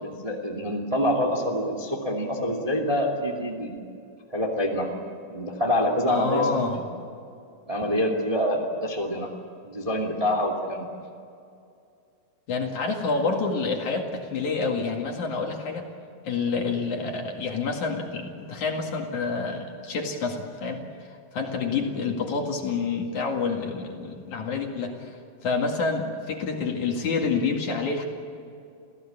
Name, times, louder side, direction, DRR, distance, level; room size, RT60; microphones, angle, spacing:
voice 1, 0.0-3.8 4.3-6.9 7.7-9.3 9.6-10.9 21.8-21.9, equal, 10° right, 1 dB, 2.1 m, -26 dB
voice 2, 6.1-6.8 12.5-15.9 16.2-20.8 21.1-25.1 25.4-28.1, left 4 dB, 55° left, 2 dB, 3.2 m, -28 dB
28.5 x 16.5 x 8.9 m, 2.5 s
omnidirectional pair, 4.3 m